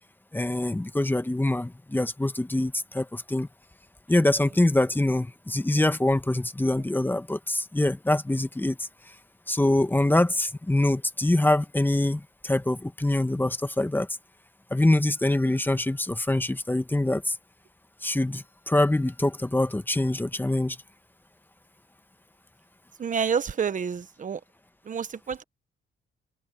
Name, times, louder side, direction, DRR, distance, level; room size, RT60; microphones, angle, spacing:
voice 1, 0.3-3.5 4.1-8.9 9.5-14.1 14.7-17.3 18.0-20.8, left 1 dB, 10° left, 1.3 m, -24 dB
voice 2, 23.0-24.4 24.8-25.4, right 6 dB, 40° right, 1.2 m, -28 dB
open air
cardioid pair, 90°, 20 cm